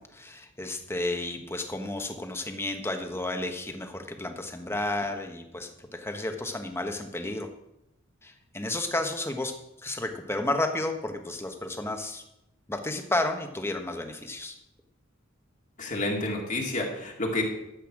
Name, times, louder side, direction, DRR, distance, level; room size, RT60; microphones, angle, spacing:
voice 1, 0.0-7.5 8.2-9.5 9.8-12.2 12.7-14.6, left 2 dB, 10° left, 5 dB, 1.2 m, -32 dB
voice 2, 15.8-17.4, left 2 dB, 40° left, -1 dB, 2.2 m, -29 dB
12.5 x 8.2 x 6.1 m, 0.85 s
head